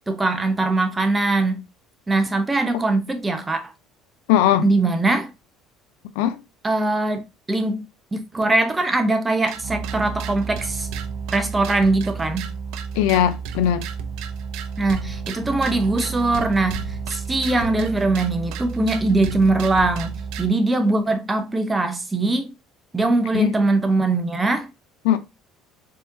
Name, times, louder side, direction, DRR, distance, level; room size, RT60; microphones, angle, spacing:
voice 1, 0.1-1.6 2.1-3.6 4.6-5.3 6.6-7.2 7.5-7.8 8.1-10.9 11.3-12.5 14.8-16.8 17.1-22.5 22.9-24.7, right 2 dB, 15° right, 0.9 m, -21 dB
voice 2, 4.3-4.7 6.2-6.4 13.0-13.8 23.3-23.5 25.0-25.2, left 11 dB, 90° left, 0.5 m, -19 dB
sound 1, 9.5-20.5, right 6 dB, 75° right, 0.6 m, -31 dB
4.2 x 3.7 x 2.7 m
cardioid pair, 110°, 0 cm